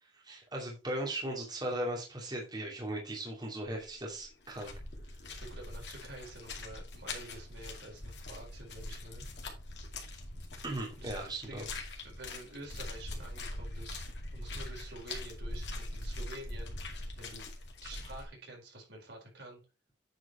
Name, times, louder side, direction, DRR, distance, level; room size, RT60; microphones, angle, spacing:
voice 1, 0.0-4.7 10.6-11.6, right 1 dB, 25° right, -2 dB, 2.5 m, -38 dB
sound 1, 3.7-3.9 4.2-18.3, left 2 dB, 70° left, 2.3 m, -42 dB
voice 2, 5.4-9.2 11.0-11.1 11.4-11.7 12.0-14.0 14.3-16.7 17.2-17.5 17.8-19.6, right 1 dB, 75° right, 0 dB, 4.4 m, -48 dB
9.2 x 4.9 x 4.4 m, 0.30 s
head